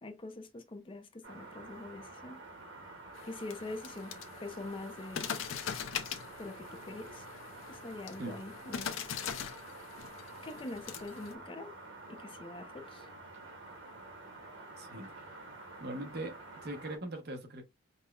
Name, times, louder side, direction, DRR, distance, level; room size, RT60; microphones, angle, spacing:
voice 1, 0.0-2.4 3.3-5.3 6.4-7.3 7.7-8.9 10.4-11.7 12.1-13.1, left 2 dB, 25° left, 0.5 m, -44 dB
sound 1, 1.2-17.0, right 2 dB, 70° right, 1.6 m, -49 dB
sound 2, 3.2-11.3, left 8 dB, 90° left, 0.5 m, -42 dB
voice 2, 14.8-15.1 15.8-17.6, right 2 dB, 55° right, 0.8 m, -41 dB
5.3 x 2.1 x 2.2 m
head